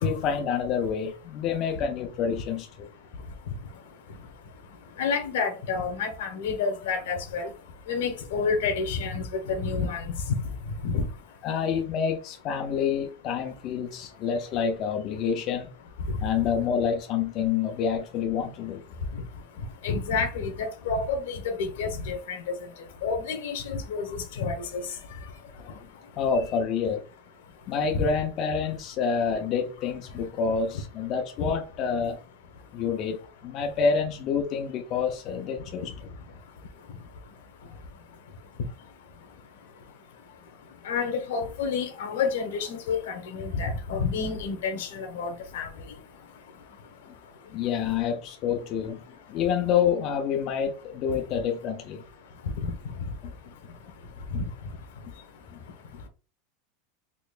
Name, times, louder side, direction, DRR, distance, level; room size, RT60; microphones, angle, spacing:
voice 1, 0.0-2.9 11.4-15.7 16.2-18.8 25.6-25.9 26.2-27.0 27.7-32.2 32.7-35.8 47.1-47.2 47.5-49.0 49.3-52.0 53.2-53.3 55.5-55.6, left 6 dB, 35° left, 0.5 m, -28 dB
voice 2, 5.0-7.5 7.9-10.4 10.8-11.0 19.8-22.4 23.0-24.8 31.4-31.5 40.8-45.7 52.6-52.7 54.3-54.4, left 5 dB, 90° left, 1.1 m, -29 dB
4.3 x 2.9 x 2.4 m
supercardioid pair, 165°, 0 cm